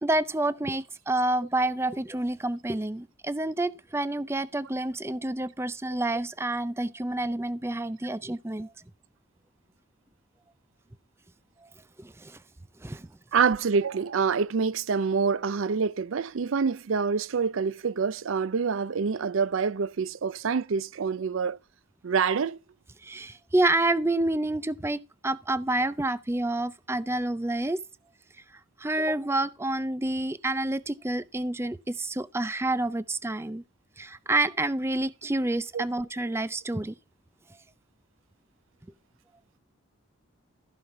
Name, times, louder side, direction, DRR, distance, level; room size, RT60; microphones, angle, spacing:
voice 1, 0.0-8.7 11.6-11.7 12.0-12.4 12.8-13.1 23.0-27.8 28.8-33.6 34.0-36.9, right 2 dB, 10° right, 0.5 m, -28 dB
voice 2, 13.3-21.6 22.0-22.6 35.7-35.9, right 5 dB, 75° right, 0.5 m, -26 dB
14.5 x 5.7 x 4.6 m
head